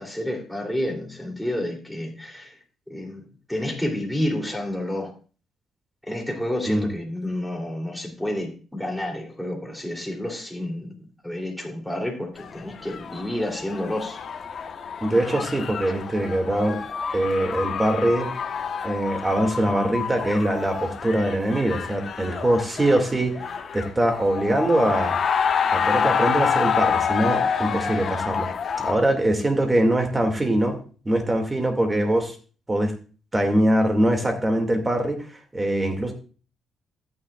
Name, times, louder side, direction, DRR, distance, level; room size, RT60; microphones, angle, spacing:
voice 1, 0.0-2.6 2.9-3.2 3.5-5.1 6.1-10.9 11.2-14.2, left 1 dB, 5° left, -1 dB, 3.1 m, -29 dB
sound 1, 12.4-28.9, left 7 dB, 50° left, 1.1 m, -28 dB
voice 2, 15.0-16.8 17.1-18.3 18.8-25.2 25.7-28.5 28.8-30.8 31.1-32.3 32.7-32.9 33.3-35.2 35.5-36.1, right 1 dB, 15° right, 5 dB, 2.3 m, -23 dB
13.5 x 9.5 x 2.4 m, 0.38 s
cardioid pair, 90°, 0 cm